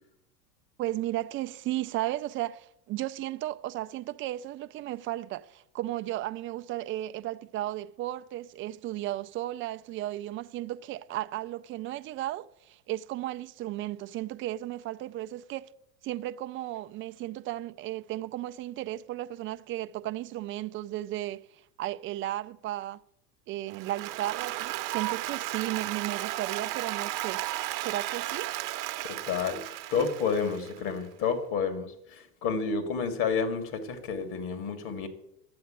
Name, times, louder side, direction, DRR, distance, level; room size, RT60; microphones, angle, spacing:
voice 1, 0.8-15.7 16.0-21.4 21.8-23.0 23.5-27.4 27.8-28.5 29.0-29.2, right 14 dB, 25° right, 0.4 m, -34 dB
Applause, 23.7-30.9, right 16 dB, 50° right, 0.9 m, -34 dB
voice 2, 29.0-35.1, left 5 dB, 45° left, 2.7 m, -30 dB
10.5 x 8.0 x 8.9 m
hypercardioid pair, 95°, 49 cm